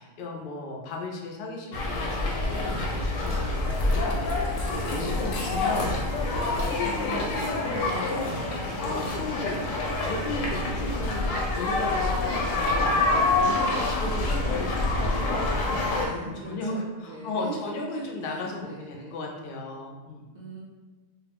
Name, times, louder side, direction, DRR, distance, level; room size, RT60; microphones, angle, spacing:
voice 1, 0.0-9.6 10.0-20.2, left 2 dB, 60° left, 0 dB, 0.6 m, -36 dB
sound 1, 1.7-16.1, left 2 dB, 90° left, 1.0 m, -27 dB
voice 2, 4.8-5.3 6.8-7.3 15.9-19.3 20.3-20.6, right 2 dB, 60° right, -5 dB, 0.7 m, -41 dB
2.3 x 2.1 x 3.3 m, 1.2 s
omnidirectional pair, 1.3 m